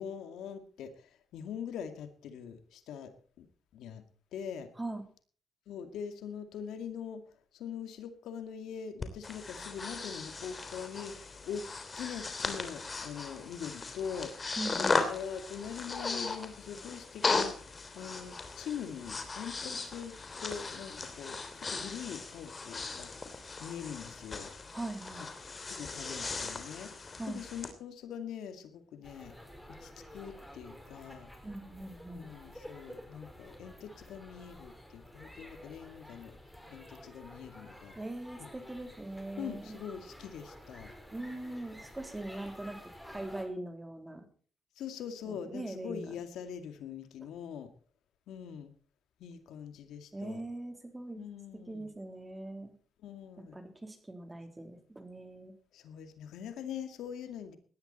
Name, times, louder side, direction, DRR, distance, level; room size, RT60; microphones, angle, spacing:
voice 1, 0.0-3.1 3.4-3.5 3.7-4.0 4.3-4.7 5.7-7.2 7.5-11.7 12.0-17.7 17.9-23.1 23.6-24.5 25.2-25.3 25.7-29.3 29.7-31.3 32.1-36.4 36.7-37.9 38.4-38.5 39.4-40.9 44.8-47.7 48.3-48.7 49.2-50.4 51.2-51.9 53.0-53.6 55.7-57.6, left 7 dB, 80° left, 9 dB, 2.2 m, -43 dB
Breathing, 9.0-27.7, left 4 dB, 30° left, 3.2 m, -37 dB
voice 2, 14.6-15.0 24.7-25.3 27.2-27.4 31.4-32.3 37.9-39.8 41.1-42.8 43.1-44.2 45.2-46.1 50.1-51.2 51.5-52.7 53.4-55.5, right 2 dB, 15° right, 7 dB, 3.6 m, -41 dB
sound 1, 29.0-43.5, equal, ahead, 4.4 m, -51 dB
18.0 x 12.0 x 4.3 m, 0.43 s
cardioid pair, 90°, 0 cm